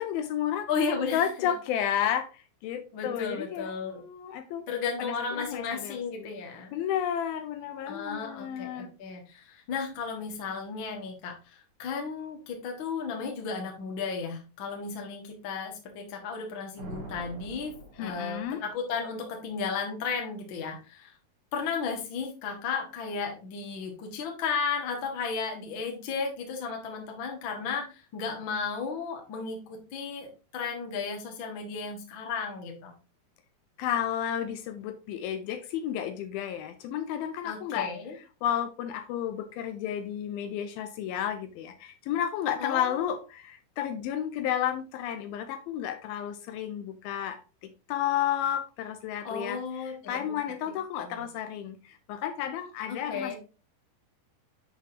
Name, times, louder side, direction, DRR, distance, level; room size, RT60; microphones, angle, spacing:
voice 1, 0.0-0.7 1.1-4.7 5.0-6.3 6.7-8.9 18.0-18.6 33.8-53.4, left 10 dB, 80° left, 2.3 m, -32 dB
voice 2, 0.7-1.5 2.9-4.0 4.7-6.7 7.8-21.1 21.5-32.9 37.4-38.1 42.6-43.1 49.2-50.3 51.0-51.2 52.9-53.4, left 5 dB, 55° left, 1.3 m, -34 dB
sound 1, 16.8-18.7, right 2 dB, 60° right, 2.5 m, -45 dB
7.3 x 5.7 x 2.8 m
omnidirectional pair, 4.5 m